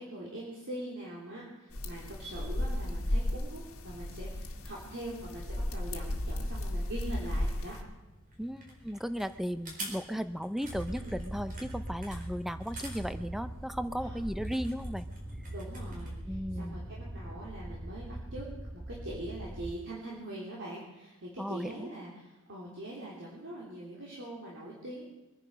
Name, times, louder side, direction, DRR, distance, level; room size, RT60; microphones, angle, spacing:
voice 1, 0.0-7.8 10.9-11.2 14.0-14.2 15.5-18.5 18.7-25.0, right 1 dB, 55° right, -5 dB, 3.3 m, -43 dB
sound 1, 1.7-7.8, left 1 dB, 65° left, 1.9 m, -34 dB
sound 2, 6.9-16.1, right 1 dB, 40° right, 4.5 m, -49 dB
voice 2, 8.4-15.1 16.3-16.8 21.4-21.9, equal, ahead, 12 dB, 0.6 m, -36 dB
sound 3, 10.6-19.7, right 1 dB, 20° right, 1.8 m, -41 dB
23.5 x 10.0 x 5.6 m, 1.1 s
head